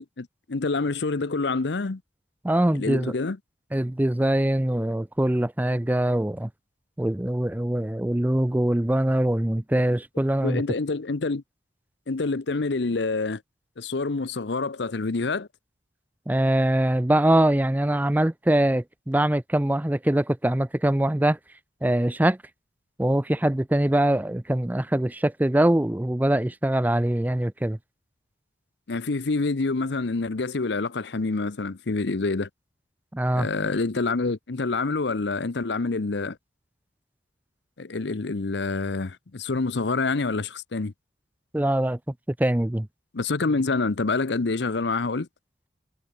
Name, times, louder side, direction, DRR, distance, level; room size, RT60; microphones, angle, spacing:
voice 1, 0.0-2.0 2.8-3.4 10.4-11.4 12.1-13.4 13.8-15.5 28.9-32.5 33.3-36.4 37.8-40.9 43.1-45.3, left 3 dB, 70° left, 0.8 m, -27 dB
voice 2, 2.4-3.1 3.7-6.5 7.0-10.6 16.3-21.4 21.8-22.4 23.0-27.8 33.1-33.5 41.5-42.0 42.4-42.9, right 1 dB, 10° right, 0.4 m, -23 dB
head